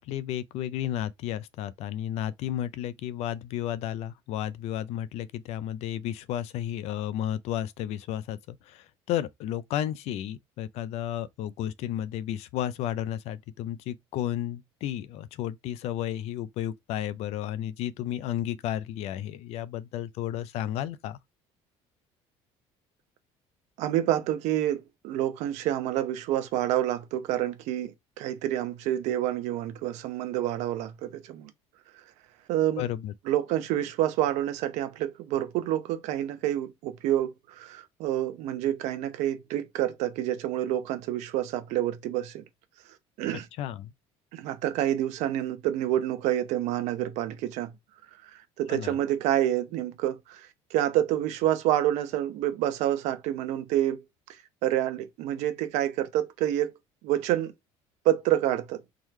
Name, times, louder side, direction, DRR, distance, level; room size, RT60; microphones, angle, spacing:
voice 1, 0.0-21.2 32.8-33.1 43.6-43.9 48.7-49.0, left 11 dB, 60° left, 0.5 m, -33 dB
voice 2, 23.8-31.5 32.5-32.8 33.3-42.4 43.2-43.5 44.3-47.7 48.6-54.0 54.6-56.7 57.0-57.5 58.0-58.8, right 12 dB, 75° right, 0.9 m, -28 dB
3.7 x 3.1 x 3.1 m
cardioid pair, 145°, 12 cm